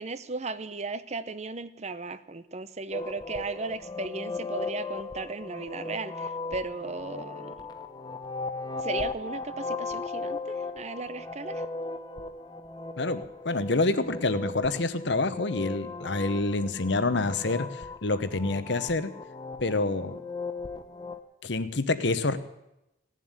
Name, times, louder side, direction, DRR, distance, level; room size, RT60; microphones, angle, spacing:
voice 1, 0.0-7.7 8.8-11.6, right 3 dB, 35° right, 14 dB, 0.7 m, -36 dB
sound 1, 2.9-21.2, left 3 dB, 20° left, 0.9 m, -37 dB
voice 2, 13.0-19.1 19.6-20.2 21.4-22.4, left 3 dB, 60° left, 12 dB, 1.0 m, -27 dB
17.0 x 7.5 x 9.8 m, 0.89 s
head